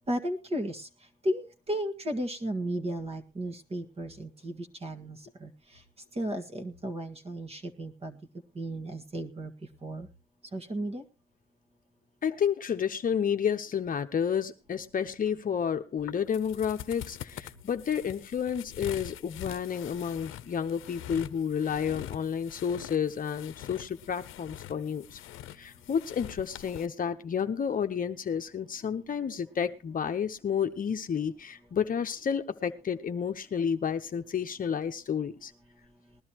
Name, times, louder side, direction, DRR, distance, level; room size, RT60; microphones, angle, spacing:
voice 1, 0.1-0.9 1.2-5.5 6.1-8.2 8.6-9.5 9.8-10.1 10.5-11.0, right 1 dB, 30° right, 1.8 m, -34 dB
voice 2, 12.2-25.2 25.5-35.5, left 7 dB, 45° left, 0.9 m, -31 dB
sound 1, 16.0-26.9, left 13 dB, 85° left, 0.7 m, -44 dB
20.0 x 12.0 x 3.0 m
cardioid pair, 90°, 20 cm